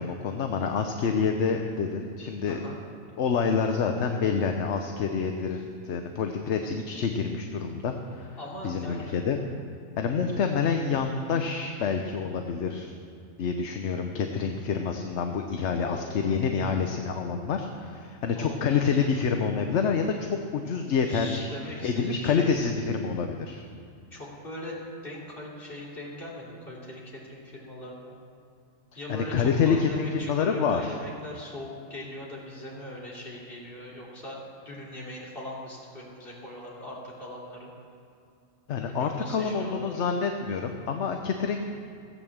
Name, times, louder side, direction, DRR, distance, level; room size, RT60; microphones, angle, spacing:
voice 1, 0.0-2.6 3.2-8.4 8.6-9.4 10.0-12.9 13.4-21.5 21.8-23.6 29.1-31.0 38.7-41.7, left 5 dB, 60° left, 4 dB, 1.1 m, -27 dB
voice 2, 2.4-2.8 8.4-9.1 15.8-16.4 18.3-19.1 21.1-22.7 24.1-24.8 25.0-28.1 28.9-37.7 38.9-39.9, left 1 dB, 45° left, -5 dB, 3.3 m, -40 dB
16.0 x 8.5 x 7.3 m, 2.5 s
omnidirectional pair, 1.4 m